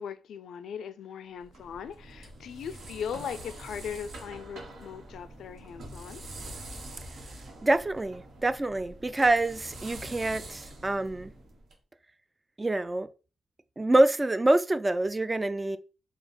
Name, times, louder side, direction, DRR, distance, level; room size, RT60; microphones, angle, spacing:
voice 1, 0.0-6.2, left 7 dB, 90° left, 0.4 m, -39 dB
sound 1, 1.4-11.7, right 1 dB, 75° right, 1.3 m, -45 dB
voice 2, 7.6-11.3 12.6-13.1 13.8-15.8, right 2 dB, 20° right, 0.3 m, -26 dB
3.8 x 2.3 x 4.2 m
cardioid pair, 115°, 0 cm